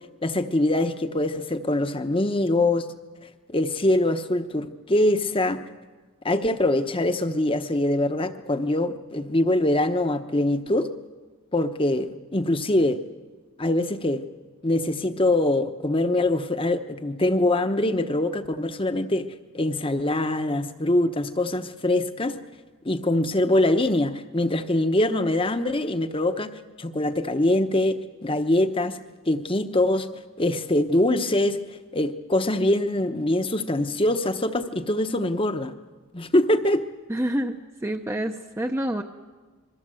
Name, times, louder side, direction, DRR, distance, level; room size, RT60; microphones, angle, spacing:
voice 1, 0.2-2.9 3.5-5.6 6.2-10.9 11.5-13.0 13.6-14.2 14.6-19.3 19.5-22.4 22.8-26.5 26.8-29.0 29.3-30.1 30.4-31.6 31.9-35.7 36.1-36.8, left 1 dB, 25° left, 9 dB, 1.0 m, -23 dB
voice 2, 37.1-39.0, right 1 dB, 10° right, 4 dB, 0.7 m, -28 dB
27.0 x 22.5 x 7.7 m, 1.4 s
head